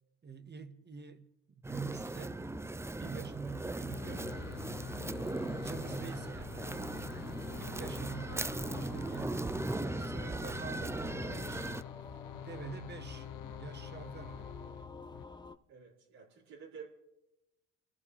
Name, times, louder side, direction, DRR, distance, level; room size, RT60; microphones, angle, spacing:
voice 1, 0.2-2.4 2.9-4.5 5.5-6.9 7.5-9.4 10.0-11.8 12.3-13.3 13.6-14.5, right 5 dB, 30° right, 1.5 m, -46 dB
sound 1, 1.6-11.8, right 2 dB, 10° right, 0.4 m, -39 dB
sound 2, 2.1-15.6, left 2 dB, 15° left, 0.9 m, -49 dB
sound 3, 3.9-15.2, left 15 dB, 70° left, 0.5 m, -47 dB
voice 2, 15.7-16.9, right 6 dB, 80° right, 4.3 m, -50 dB
29.0 x 14.0 x 3.2 m
supercardioid pair, 65°, 33 cm